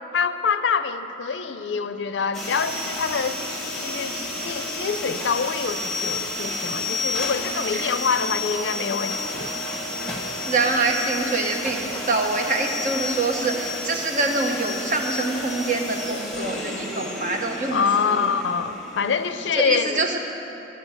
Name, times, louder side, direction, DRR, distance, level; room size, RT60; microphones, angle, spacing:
voice 1, 0.1-3.4 3.8-9.5 17.7-20.0, left 6 dB, 75° left, 11 dB, 0.5 m, -25 dB
sound 1, 2.3-19.6, left 2 dB, ahead, 1.2 m, -31 dB
voice 2, 10.5-18.3 19.5-20.2, right 3 dB, 45° right, 2 dB, 1.0 m, -25 dB
13.5 x 5.2 x 8.8 m, 3.0 s
head